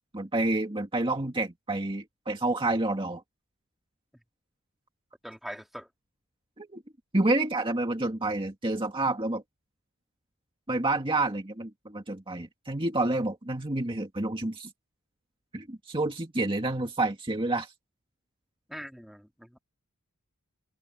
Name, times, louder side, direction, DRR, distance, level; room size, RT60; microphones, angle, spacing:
voice 1, 0.1-3.2 6.6-6.8 7.1-9.4 10.7-14.7 15.5-17.7, right 2 dB, 25° right, 2.1 m, -29 dB
voice 2, 5.2-5.9 18.7-19.6, equal, ahead, 2.8 m, -42 dB
head